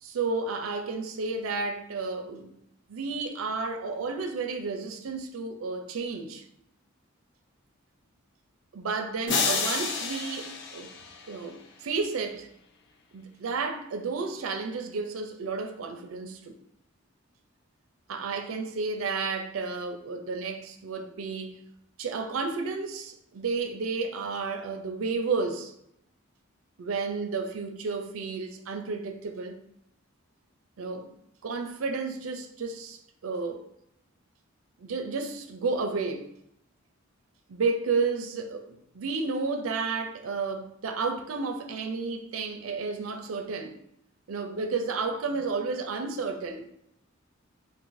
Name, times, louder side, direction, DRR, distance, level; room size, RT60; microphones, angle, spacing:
voice 1, 0.0-2.6 2.9-6.4 8.7-10.9 11.3-12.5 13.1-16.6 18.1-21.6 22.0-25.7 26.8-29.6 30.8-31.2 31.4-33.6 34.8-36.3 37.5-43.8 44.3-46.7, right 4 dB, 85° right, 0.5 m, -32 dB
sound 1, 9.3-11.6, left 4 dB, 60° left, 0.5 m, -30 dB
2.6 x 2.5 x 3.8 m
head